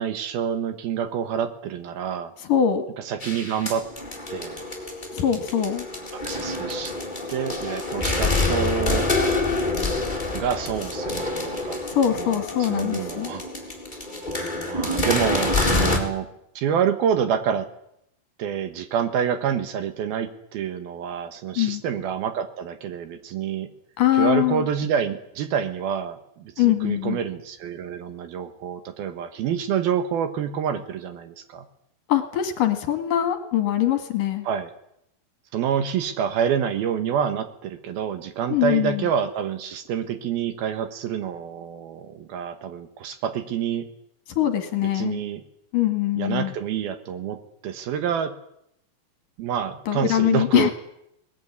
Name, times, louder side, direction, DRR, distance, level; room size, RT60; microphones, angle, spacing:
voice 1, 0.0-2.3 3.1-3.9 4.3-4.6 6.1-6.9 7.3-9.1 10.3-11.8 12.2-13.4 14.5-16.3 16.6-17.7 18.4-23.7 24.2-31.6 34.4-34.7 35.5-43.9 44.9-45.4 46.2-48.3 49.4-50.7, right 8 dB, 70° right, 10 dB, 3.1 m, -27 dB
voice 2, 2.4-2.9 5.1-5.9 11.9-13.3 21.6-21.8 24.0-24.7 26.6-27.2 32.1-34.5 38.5-39.1 44.4-45.2 45.7-46.5 49.9-50.7, left 11 dB, 60° left, 7 dB, 3.3 m, -22 dB
sound 1, 3.2-16.0, left 2 dB, 10° left, 3.6 m, -27 dB
21.5 x 19.5 x 9.7 m, 0.78 s
omnidirectional pair, 4.8 m